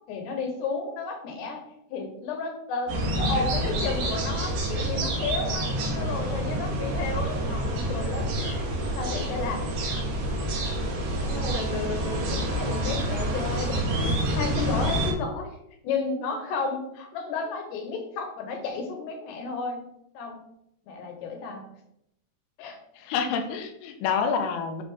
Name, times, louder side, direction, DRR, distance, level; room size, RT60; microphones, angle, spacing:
voice 1, 0.1-1.6 1.9-8.6 9.0-9.7 11.2-15.6 15.8-19.8 20.1-20.4 20.9-21.7 22.6-22.8, left 4 dB, 70° left, 3 dB, 2.9 m, -32 dB
sound 1, 2.9-15.1, right 1 dB, 60° right, 3.4 m, -28 dB
voice 2, 23.0-24.8, left 6 dB, 85° left, 6 dB, 3.4 m, -28 dB
10.5 x 3.8 x 3.9 m, 0.77 s
omnidirectional pair, 5.7 m